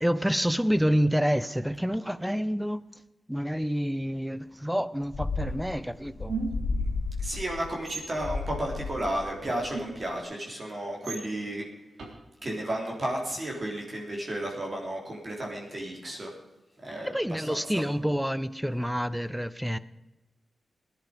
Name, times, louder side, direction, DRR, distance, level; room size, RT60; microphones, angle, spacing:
voice 1, 0.0-2.8 3.3-6.3 17.1-19.8, equal, 5° right, 0.6 m, -28 dB
sound 1, 5.1-10.1, left 3 dB, 65° left, 2.6 m, -33 dB
sound 2, 6.3-6.8 7.9-8.1 9.7-10.2 11.0-11.2 12.0-12.1, right 4 dB, 75° right, 3.8 m, -34 dB
voice 2, 7.2-11.7 12.4-16.3 16.8-17.8, right 1 dB, 35° right, 3.5 m, -33 dB
18.0 x 11.0 x 5.2 m
wide cardioid pair, 110°, 0 cm